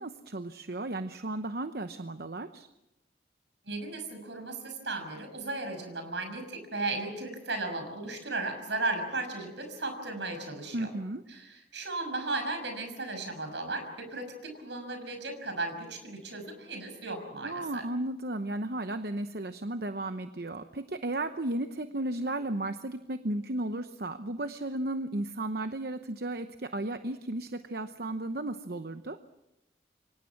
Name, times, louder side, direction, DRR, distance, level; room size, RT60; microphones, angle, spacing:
voice 1, 0.0-2.7 10.7-11.2 17.4-29.2, right 1 dB, 55° right, 9 dB, 0.9 m, -34 dB
voice 2, 3.6-10.9 11.3-17.9, right 2 dB, 75° right, 6 dB, 6.2 m, -35 dB
28.0 x 24.5 x 6.0 m, 0.91 s
head